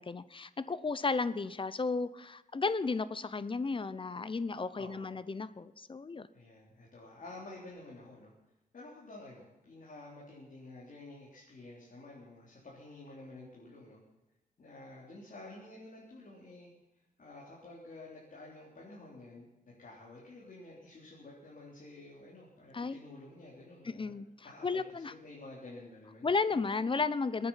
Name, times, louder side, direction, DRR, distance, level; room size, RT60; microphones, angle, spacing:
voice 1, 0.0-6.3 22.7-23.0 23.8-24.3 24.6-25.1 26.2-27.5, left 4 dB, 35° left, 15 dB, 0.8 m, -33 dB
voice 2, 4.7-5.1 6.3-8.3 8.7-14.0 14.6-16.7 17.2-24.2 24.4-26.8, left 2 dB, 65° left, -4 dB, 3.8 m, -51 dB
25.5 x 9.5 x 5.8 m, 0.96 s
wide cardioid pair, 115°, 15 cm